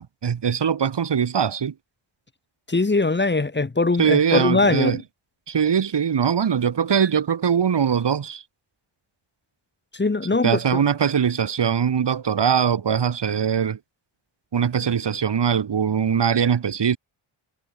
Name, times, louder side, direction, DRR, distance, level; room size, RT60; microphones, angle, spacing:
voice 1, 0.0-1.7 4.0-5.0 5.5-8.4 10.4-13.8 14.5-17.0, right 7 dB, 55° right, 1.7 m, -21 dB
voice 2, 2.7-5.0 9.9-10.8, left 3 dB, 20° left, 1.4 m, -21 dB
wide cardioid pair, 165°, 49 cm